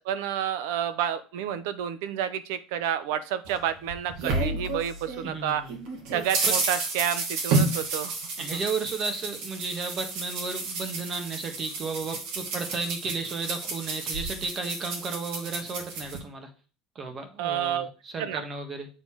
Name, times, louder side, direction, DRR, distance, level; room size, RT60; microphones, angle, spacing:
voice 1, 0.0-5.6 6.1-8.2 17.4-17.9 18.2-18.4, right 10 dB, 85° right, 13 dB, 0.8 m, -30 dB
sound 1, 3.5-5.3 5.7-16.2, right 3 dB, 70° right, 2.3 m, -31 dB
voice 2, 5.2-5.8 6.5-6.6 8.4-16.5 16.9-18.9, right 4 dB, 30° right, 6 dB, 1.5 m, -33 dB
7.6 x 4.1 x 4.7 m, 0.35 s
cardioid pair, 155°, 0 cm